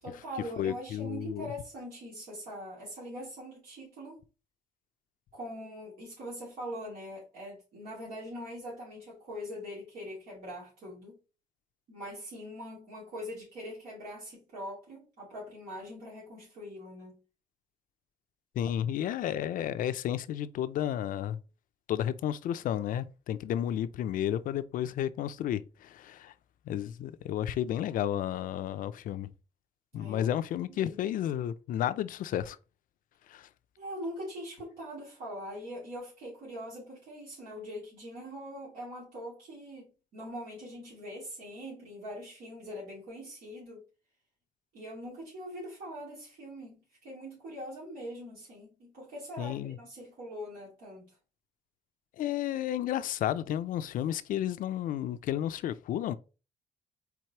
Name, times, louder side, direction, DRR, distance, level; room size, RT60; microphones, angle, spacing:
voice 1, 0.0-4.2 5.3-11.2 11.9-17.2 29.9-30.3 30.7-31.0 33.8-43.8 44.7-51.1, equal, 80° right, 2.5 m, -42 dB
voice 2, 0.6-1.5 18.6-21.4 21.9-26.3 26.7-29.3 29.9-32.6 33.3-33.5 49.4-49.8 52.2-56.2, left 11 dB, 70° left, 0.4 m, -32 dB
4.6 x 4.0 x 2.9 m
cardioid pair, 100°, 15 cm